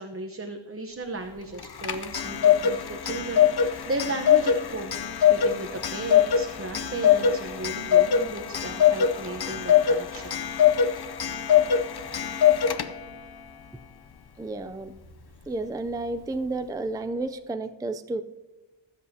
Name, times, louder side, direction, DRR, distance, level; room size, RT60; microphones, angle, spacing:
voice 1, 0.0-5.0 5.3-10.4, right 2 dB, 30° right, 4 dB, 0.9 m, -35 dB
Clock, 1.6-13.2, left 9 dB, 50° left, 0.7 m, -23 dB
voice 2, 14.4-14.9 15.5-18.2, right 2 dB, 10° right, 9 dB, 0.4 m, -31 dB
23.5 x 7.8 x 2.8 m, 1.1 s
wide cardioid pair, 105°, 48 cm